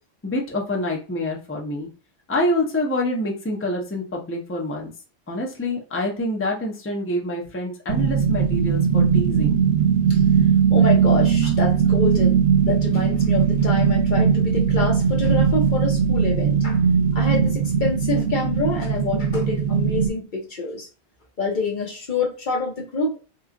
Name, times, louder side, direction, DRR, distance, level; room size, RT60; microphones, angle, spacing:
voice 1, 0.2-1.9 2.3-4.9 5.3-9.5, left 1 dB, 15° left, 0 dB, 0.6 m, -26 dB
sound 1, 7.9-20.1, right 7 dB, 90° right, 0.9 m, -19 dB
voice 2, 10.7-16.8 17.1-20.9 21.4-23.2, left 3 dB, 50° left, 0 dB, 0.9 m, -27 dB
3.0 x 2.3 x 3.7 m, 0.34 s
omnidirectional pair, 1.1 m